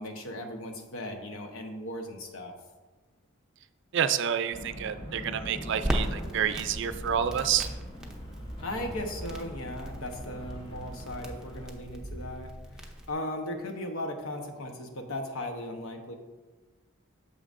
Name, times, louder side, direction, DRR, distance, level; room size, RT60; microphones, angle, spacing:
voice 1, 0.0-2.5 8.6-16.1, left 1 dB, 85° left, 4 dB, 1.0 m, -37 dB
voice 2, 3.9-7.7, right 8 dB, 60° right, 11 dB, 0.4 m, -28 dB
sound 1, 4.5-11.7, equal, 25° left, 0.8 m, -41 dB
Crackle, 5.8-13.1, equal, 5° right, 0.6 m, -38 dB
8.7 x 6.7 x 2.5 m, 1.3 s
head